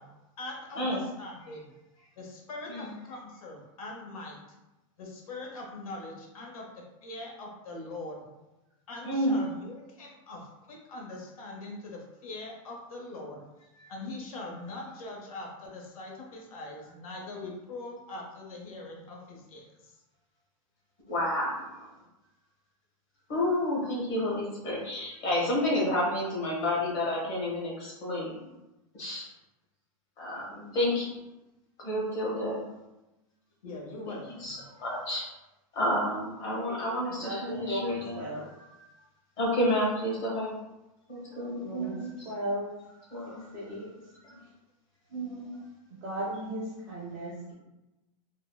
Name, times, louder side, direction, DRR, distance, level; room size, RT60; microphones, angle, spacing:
voice 1, 0.0-1.7 2.2-4.4 5.0-8.3 8.9-13.5 13.9-19.9 33.6-34.6, left 2 dB, 85° left, 0 dB, 0.7 m, -42 dB
voice 2, 9.0-9.4 13.8-13.9 21.1-21.9 23.3-28.4 29.0-29.3 30.2-31.1 31.8-32.6 34.1-35.2 35.7-38.2 39.4-40.6 41.1-42.1 43.1-43.4 44.3-44.4 45.1-45.6, left 1 dB, 25° left, -4 dB, 0.8 m, -30 dB
voice 3, 36.5-38.5 41.6-42.0 42.2-42.7 43.5-44.0 45.9-47.5, right 1 dB, 25° right, -6 dB, 0.5 m, -36 dB
3.4 x 2.0 x 2.2 m, 0.99 s
supercardioid pair, 180°, 18 cm